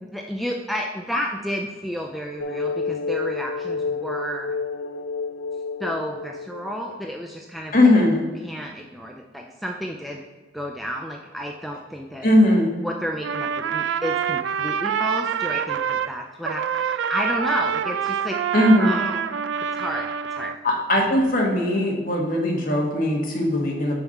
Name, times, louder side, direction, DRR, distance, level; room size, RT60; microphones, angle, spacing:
voice 1, 0.0-4.6 5.8-7.7 8.4-10.2 10.5-12.3 12.8-19.3 19.7-20.6, equal, ahead, 1 dB, 0.4 m, -31 dB
sound 1, 2.4-7.1, left 4 dB, 85° left, 0.3 m, -29 dB
voice 2, 7.7-8.2 12.2-12.7 18.5-18.9 20.6-24.0, left 1 dB, 50° left, 0 dB, 1.4 m, -19 dB
Trumpet, 13.2-16.1 16.4-20.6, right 8 dB, 75° right, 0.3 m, -26 dB
5.8 x 4.2 x 5.4 m, 1.3 s
head